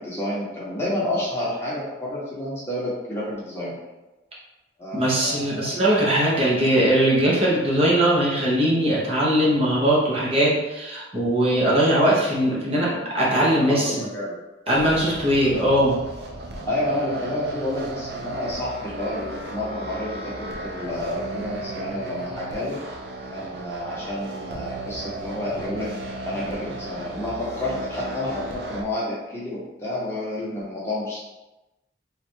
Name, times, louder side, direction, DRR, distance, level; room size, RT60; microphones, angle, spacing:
voice 1, 0.0-3.8 4.8-5.7 12.7-14.4 16.6-22.8 23.3-25.9 26.2-31.2, left 1 dB, 15° left, -7 dB, 0.9 m, -30 dB
voice 2, 4.9-12.9 13.1-13.8 14.7-16.0, right 1 dB, 30° right, -6 dB, 0.8 m, -20 dB
sound 1, 14.7-28.8, right 2 dB, 60° right, 0.5 m, -35 dB
3.2 x 2.4 x 4.4 m, 1.0 s
head